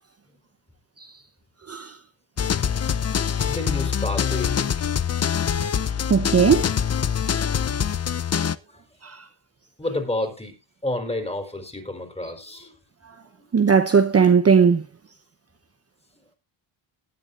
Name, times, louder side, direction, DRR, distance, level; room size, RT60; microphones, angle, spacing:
sound 1, 2.4-8.6, left 8 dB, 30° left, 0.7 m, -24 dB
voice 1, 3.2-4.9 8.7-8.8 9.8-10.5 10.8-12.7 13.4-13.5, left 2 dB, 10° left, 4.1 m, -30 dB
voice 2, 6.1-6.7 7.2-7.3 9.0-9.2 13.5-14.8, right 6 dB, 30° right, 0.9 m, -18 dB
18.5 x 10.5 x 2.5 m
cardioid pair, 90°, 48 cm